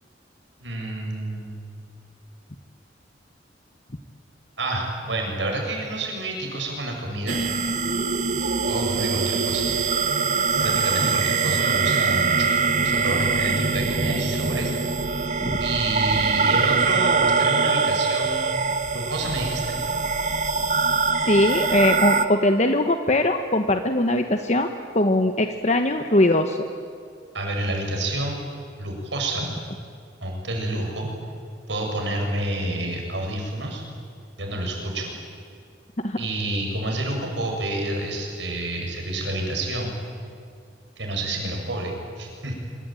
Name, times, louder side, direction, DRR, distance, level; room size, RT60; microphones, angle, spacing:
voice 1, 0.6-1.6 4.6-7.4 8.4-9.7 10.6-12.5 12.7-14.7 15.6-18.5 18.9-19.7 27.3-28.4 28.8-29.5 30.2-31.1 31.7-33.8 34.4-35.1 36.2-39.9 41.0-42.5, right 1 dB, 85° right, 1 dB, 7.5 m, -28 dB
sound 1, 7.3-22.2, right 4 dB, 45° right, 1.4 m, -23 dB
voice 2, 21.3-24.7 24.9-26.6 36.0-36.2, left 1 dB, 40° left, 6 dB, 1.2 m, -21 dB
25.5 x 25.5 x 9.2 m, 2.3 s
head